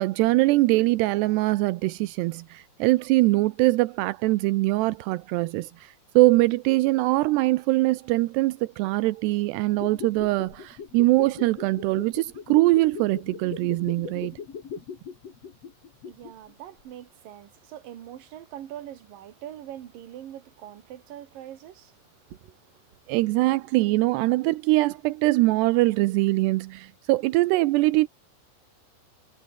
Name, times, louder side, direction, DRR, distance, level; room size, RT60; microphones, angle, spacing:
voice 1, 0.0-14.4 23.1-28.1, right 20 dB, 85° right, 2.8 m, -22 dB
sound 1, 9.6-16.5 16.8-16.9, left 6 dB, 40° left, 3.4 m, -40 dB
voice 2, 15.9-23.2, right 11 dB, 60° right, 3.4 m, -43 dB
omnidirectional pair, 4.8 m